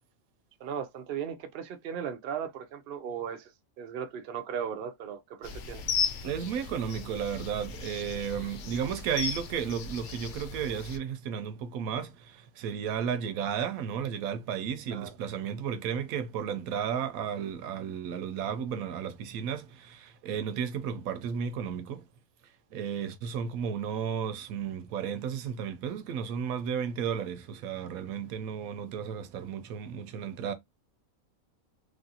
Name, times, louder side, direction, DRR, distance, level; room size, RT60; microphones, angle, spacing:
voice 1, 0.6-3.5 3.8-5.8 14.9-15.1, right 8 dB, 60° right, 0.6 m, -37 dB
sound 1, 5.4-11.0, left 6 dB, 65° left, 0.9 m, -36 dB
voice 2, 6.2-22.1 22.4-30.5, right 7 dB, 85° right, 1.1 m, -33 dB
3.3 x 2.5 x 2.7 m
omnidirectional pair, 1.4 m